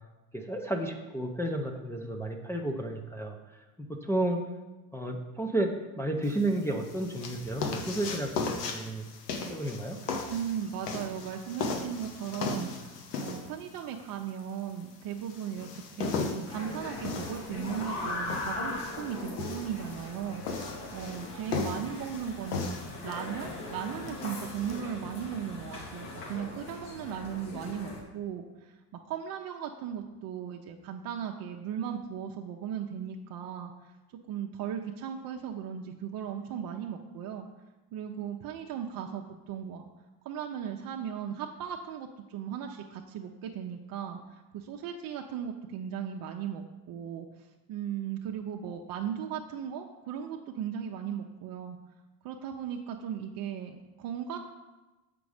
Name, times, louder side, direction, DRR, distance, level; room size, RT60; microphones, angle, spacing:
voice 1, 0.3-4.4 4.9-9.1 9.5-10.0, right 1 dB, 5° left, 0 dB, 0.6 m, -32 dB
sound 1, 6.2-24.8, left 4 dB, 90° left, 1.2 m, -37 dB
voice 2, 10.3-28.8 29.1-33.9 34.3-37.5 37.9-39.9 40.2-51.8 52.2-54.4, right 8 dB, 50° right, 2 dB, 0.7 m, -37 dB
sound 2, 16.5-28.0, left 2 dB, 60° left, 2.4 m, -40 dB
6.9 x 5.2 x 4.9 m, 1.1 s
supercardioid pair, 95°, 45 cm